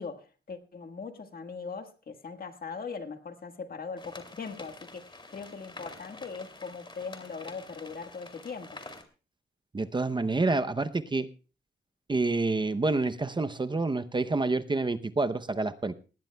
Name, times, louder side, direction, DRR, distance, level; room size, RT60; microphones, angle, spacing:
voice 1, 0.0-8.8, left 5 dB, 50° left, 1.5 m, -40 dB
sound 1, 4.0-9.0, left 2 dB, 25° left, 2.6 m, -47 dB
voice 2, 9.7-11.3 12.1-15.9, right 3 dB, 25° right, 0.7 m, -28 dB
19.5 x 16.5 x 2.3 m
wide cardioid pair, 115°, 19 cm